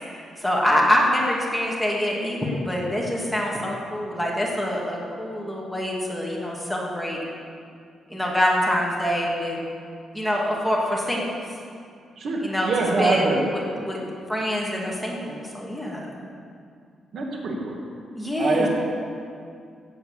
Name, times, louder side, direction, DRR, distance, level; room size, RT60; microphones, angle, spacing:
voice 1, 0.4-7.2 8.1-9.6 10.1-11.4 12.4-12.7 13.0-14.0 14.3-16.1 18.1-18.7, equal, ahead, -4 dB, 2.3 m, -25 dB
voice 2, 12.2-13.8 17.1-17.8 18.4-18.7, right 3 dB, 60° right, 0 dB, 2.3 m, -24 dB
16.5 x 7.9 x 7.5 m, 2.3 s
cardioid pair, 150°, 0 cm